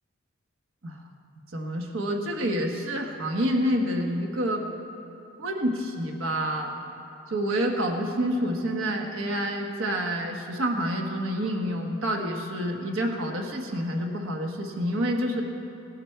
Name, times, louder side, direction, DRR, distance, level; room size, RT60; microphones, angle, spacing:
voice 1, 1.5-4.6 5.4-6.8 7.3-15.4, equal, 70° right, 2 dB, 1.3 m, -28 dB
18.5 x 11.0 x 4.6 m, 2.9 s
head